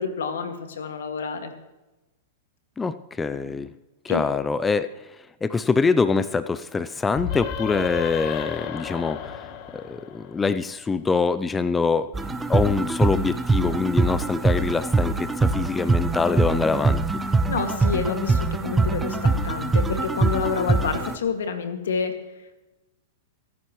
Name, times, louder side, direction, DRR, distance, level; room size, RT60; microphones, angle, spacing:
voice 1, 0.0-1.5 4.1-4.2 17.5-22.2, left 6 dB, 85° left, 6 dB, 2.1 m, -28 dB
voice 2, 2.8-3.7 4.0-4.9 5.4-9.4 9.7-17.0, left 4 dB, 15° left, 13 dB, 0.5 m, -24 dB
sound 1, 7.1-10.7, left 8 dB, 45° left, 1.3 m, -33 dB
sound 2, 12.1-21.1, right 3 dB, 10° right, 0.9 m, -23 dB
23.5 x 11.0 x 3.2 m, 1.0 s
hypercardioid pair, 125°, 0 cm